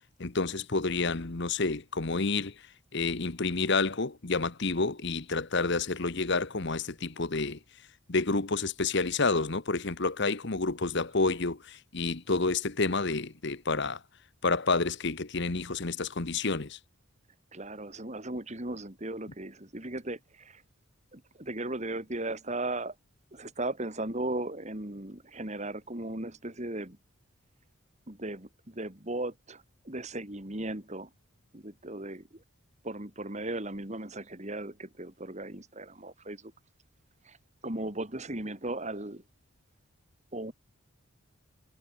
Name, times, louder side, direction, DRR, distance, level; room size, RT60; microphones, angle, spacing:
voice 1, 0.2-2.5 2.9-7.6 8.1-14.0 14.4-16.8, left 3 dB, 55° left, 1.2 m, -29 dB
voice 2, 17.5-20.6 21.1-23.0 23.3-27.0 28.1-31.1 31.5-32.4 32.8-36.5 37.2-37.4 37.6-39.2 40.3-40.5, right 2 dB, 35° right, 2.5 m, -37 dB
head